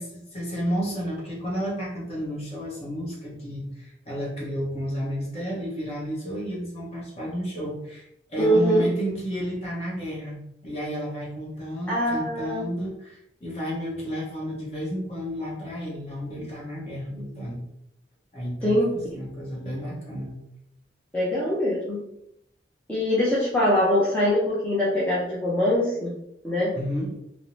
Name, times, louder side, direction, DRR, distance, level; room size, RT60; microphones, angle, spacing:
voice 1, 0.0-17.6 18.3-18.8 19.1-20.4 26.7-27.1, equal, 35° left, -4 dB, 0.8 m, -32 dB
voice 2, 8.4-8.8 11.9-12.6 18.6-18.9 21.1-22.0 22.9-26.1 26.4-26.7, equal, 5° left, -8 dB, 0.4 m, -23 dB
2.5 x 2.0 x 3.0 m, 0.78 s
head